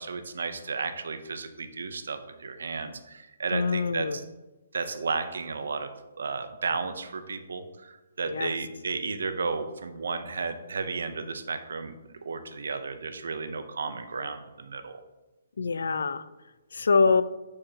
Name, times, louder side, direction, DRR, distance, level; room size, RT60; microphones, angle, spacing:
voice 1, 0.0-4.2 4.7-5.9 6.2-15.0, right 4 dB, 70° right, 9 dB, 0.7 m, -33 dB
voice 2, 3.5-4.2 8.3-8.5 15.6-16.2 16.7-17.2, left 4 dB, 80° left, 14 dB, 0.4 m, -24 dB
8.5 x 4.8 x 2.8 m, 1.1 s
hypercardioid pair, 180°, 0 cm